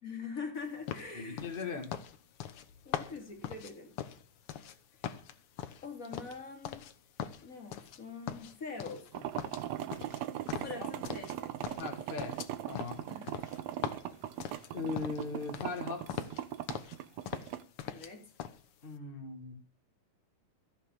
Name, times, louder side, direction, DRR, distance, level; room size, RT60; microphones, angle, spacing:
voice 1, 0.0-1.5 2.8-4.0 5.8-6.9 7.4-9.3 10.6-11.5 13.1-13.3 17.8-18.2, left 4 dB, 25° left, 2.9 m, -43 dB
sound 1, 0.9-4.8 5.0-6.9 7.2-8.0 8.3-9.1 9.4-11.4 11.6-15.3 15.5-15.8 16.1-17.0 17.3-18.1 18.4-18.6, left 9 dB, 85° left, 1.2 m, -41 dB
voice 2, 1.1-1.9 10.8-10.9 11.8-12.4 12.7-13.0 14.7-16.3 18.8-19.5, left 4 dB, 55° left, 0.5 m, -39 dB
sound 2, 9.1-17.6, right 12 dB, 75° right, 1.6 m, -39 dB
14.0 x 8.4 x 7.3 m
omnidirectional pair, 4.0 m